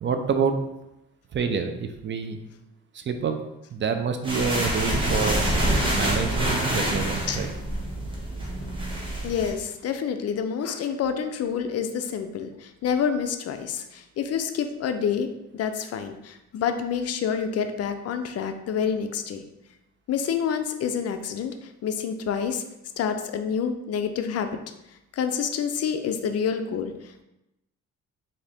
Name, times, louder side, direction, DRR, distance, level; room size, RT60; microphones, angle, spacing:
voice 1, 0.0-0.5 1.3-2.4 2.9-3.4 3.7-5.4 5.9-7.5, right 6 dB, 40° right, 7 dB, 0.4 m, -27 dB
sound 1, 4.2-9.5, right 1 dB, 15° right, 1.0 m, -26 dB
voice 2, 9.2-15.3 15.5-19.4 20.1-22.6 23.0-24.5 25.1-27.2, left 7 dB, 55° left, 8 dB, 0.5 m, -28 dB
3.8 x 2.7 x 3.4 m, 0.89 s
cardioid pair, 90°, 30 cm